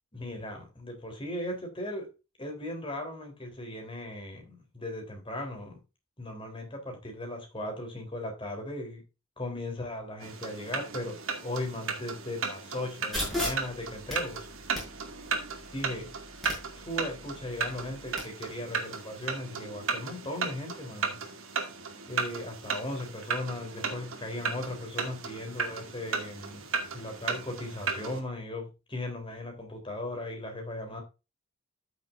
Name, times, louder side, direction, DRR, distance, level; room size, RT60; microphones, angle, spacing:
voice 1, 0.1-2.1 2.4-5.8 6.2-9.0 9.4-14.5 15.7-16.2 16.7-21.2 22.1-26.7 26.9-31.0, left 1 dB, 25° left, 3.6 m, -37 dB
sound 1, 10.2-28.2, right 5 dB, 65° right, 2.2 m, -35 dB
sound 2, 13.1-18.2, left 1 dB, ahead, 6.4 m, -38 dB
13.5 x 7.0 x 2.6 m
head